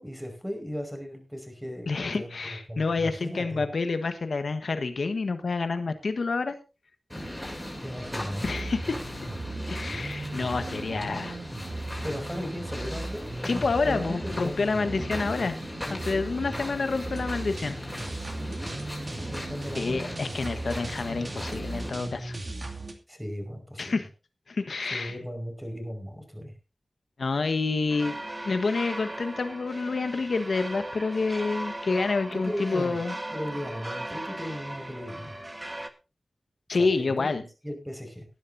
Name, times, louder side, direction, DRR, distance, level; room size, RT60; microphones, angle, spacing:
voice 1, 0.0-3.6 7.8-8.5 12.0-15.3 15.8-16.2 18.4-18.8 19.1-20.2 23.1-24.0 24.9-26.5 32.3-33.0 33.3-35.4 36.8-38.3, equal, 5° right, 5 dB, 5.3 m, -37 dB
voice 2, 1.9-6.5 7.2-7.3 8.4-9.0 9.7-11.4 13.4-15.6 15.9-17.8 19.8-22.4 23.8-24.1 24.5-25.2 27.2-28.1 28.4-33.1 36.7-37.4, left 4 dB, 80° left, 9 dB, 1.3 m, -28 dB
sound 1, 7.1-21.9, left 1 dB, 10° left, 7.4 m, -39 dB
sound 2, 8.4-22.9, right 2 dB, 45° right, 2.5 m, -37 dB
sound 3, 27.9-35.9, right 1 dB, 25° right, 1.5 m, -38 dB
20.0 x 10.5 x 2.7 m, 0.30 s
wide cardioid pair, 60°, 0 cm